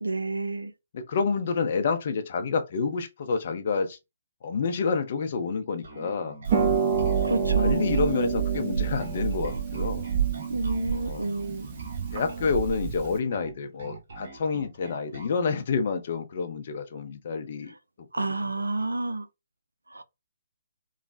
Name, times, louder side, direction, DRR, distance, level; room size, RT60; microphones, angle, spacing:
voice 1, 0.0-0.7 7.2-7.9 10.5-11.7 18.1-19.3 19.9-20.0, right 2 dB, 85° right, 0.3 m, -29 dB
voice 2, 0.9-4.0 4.4-6.4 6.9-7.1 7.6-10.0 10.9-11.2 12.1-18.9, left 5 dB, 50° left, 0.6 m, -29 dB
Bass guitar, 5.8-15.4, right 3 dB, 60° right, 1.0 m, -45 dB
Harp, 6.4-13.2, right 7 dB, 40° right, 0.7 m, -27 dB
3.1 x 2.0 x 2.6 m
figure-of-eight pair, 135°, 0 cm